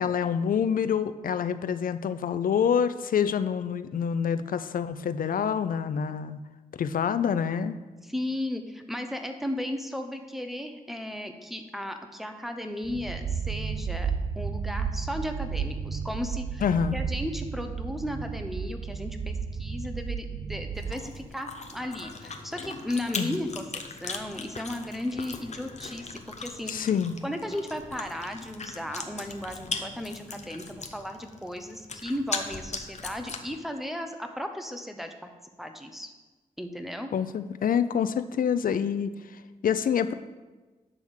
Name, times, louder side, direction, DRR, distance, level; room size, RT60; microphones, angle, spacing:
voice 1, 0.0-6.4 6.7-7.8 16.6-17.0 23.2-23.4 26.7-27.1 37.1-40.1, left 7 dB, 75° left, 12 dB, 0.4 m, -27 dB
voice 2, 8.0-16.6 16.9-23.7 24.0-26.7 27.2-35.3 35.6-36.1 36.6-37.1, left 1 dB, ahead, 6 dB, 1.0 m, -35 dB
sound 1, 12.8-21.3, right 6 dB, 55° right, 0.4 m, -33 dB
Chewing mastication, 20.7-33.6, left 4 dB, 50° left, 0.9 m, -39 dB
9.8 x 3.5 x 6.3 m, 1.2 s
cardioid pair, 50°, 15 cm